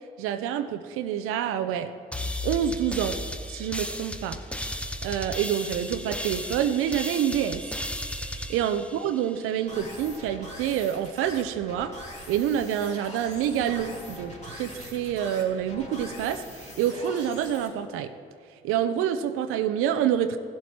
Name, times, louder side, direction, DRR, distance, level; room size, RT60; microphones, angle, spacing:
voice 1, 0.2-1.9 2.4-3.2 3.5-4.4 5.0-7.6 8.3-11.9 12.3-18.1 18.6-20.4, right 9 dB, 90° right, 9 dB, 0.5 m, -27 dB
sound 1, 2.1-9.6, left 1 dB, 5° left, 0.8 m, -35 dB
sound 2, 9.7-17.7, left 1 dB, 35° left, 3.1 m, -43 dB
15.0 x 7.5 x 4.2 m, 2.6 s
supercardioid pair, 70°, 21 cm